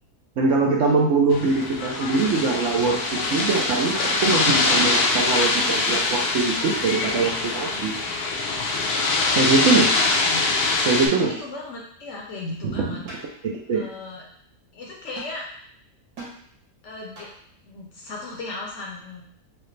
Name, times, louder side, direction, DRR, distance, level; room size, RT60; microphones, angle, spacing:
voice 1, 0.4-7.9 9.3-9.9 10.8-11.3 12.6-13.0 13.4-13.8, right 4 dB, 65° right, -1 dB, 0.8 m, -22 dB
sound 1, 0.9-1.1 1.6-1.8 2.5-3.0 4.1-4.6 5.9-6.4 7.7-8.3 9.7-10.0 11.2-11.6 13.1-13.5 15.2-15.4 16.2-16.4 17.2-17.5, right 2 dB, 85° right, 1.8 m, -43 dB
sound 2, 1.3-11.1, left 3 dB, 85° left, 1.2 m, -23 dB
voice 2, 11.1-13.0 13.3-13.4 13.7-14.2 14.7-15.5 16.8-17.3 17.7-19.2, left 2 dB, 60° left, -2 dB, 0.9 m, -36 dB
4.8 x 2.1 x 3.1 m, 0.64 s
omnidirectional pair, 1.6 m